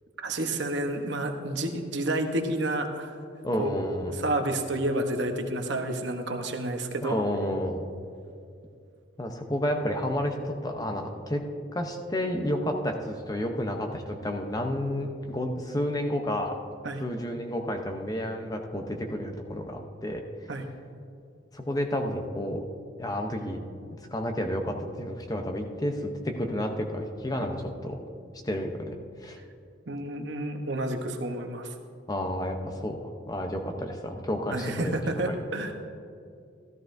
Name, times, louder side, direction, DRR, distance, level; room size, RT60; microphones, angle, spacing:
voice 1, 0.2-3.2 3.6-7.2 16.8-17.1 20.5-20.7 27.4-27.5 29.9-31.7 34.5-35.7, right 1 dB, 60° right, 5 dB, 0.9 m, -30 dB
voice 2, 3.4-4.1 7.0-7.8 9.2-11.4 11.7-16.5 17.0-20.2 21.5-22.6 23.0-23.6 24.1-28.0 28.4-28.9 29.2-29.4 32.1-35.0 35.3-35.4, left 1 dB, 20° left, 4 dB, 0.6 m, -31 dB
13.5 x 13.5 x 2.6 m, 2.4 s
head